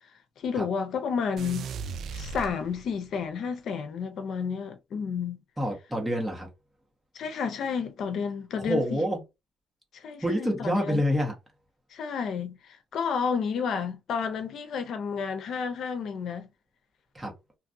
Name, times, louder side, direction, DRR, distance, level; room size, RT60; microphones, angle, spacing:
voice 1, 0.4-1.7 2.1-5.4 7.1-9.0 9.9-11.0 11.9-16.5, left 6 dB, 70° left, 0.7 m, -31 dB
sound 1, 1.4-3.1, right 5 dB, 70° right, 0.4 m, -37 dB
voice 2, 5.6-6.5 8.6-9.2 10.2-11.3 17.1-17.3, equal, 10° right, 1.4 m, -27 dB
3.0 x 2.5 x 2.7 m
cardioid pair, 90°, 0 cm